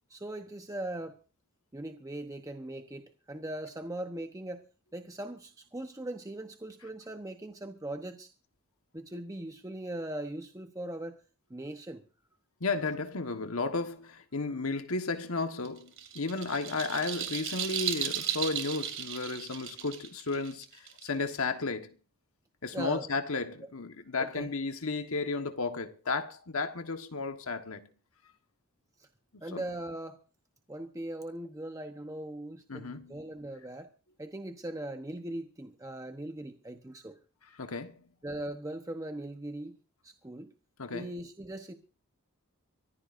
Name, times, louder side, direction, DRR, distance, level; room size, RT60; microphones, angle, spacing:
voice 1, 0.1-1.2 1.7-4.6 4.9-8.3 8.9-11.2 11.5-12.0 22.7-23.1 24.2-24.5 29.0-29.1 29.4-30.2 30.7-33.9 34.2-37.2 38.2-39.8 40.0-40.5 40.9-41.7, right 1 dB, 15° right, 0.9 m, -40 dB
voice 2, 12.6-21.9 22.6-27.9 29.5-29.6 32.7-33.2 37.6-38.0 40.8-41.1, left 3 dB, 70° left, 1.4 m, -33 dB
sound 1, 15.6-21.4, right 9 dB, 60° right, 2.5 m, -35 dB
24.0 x 15.0 x 2.6 m
head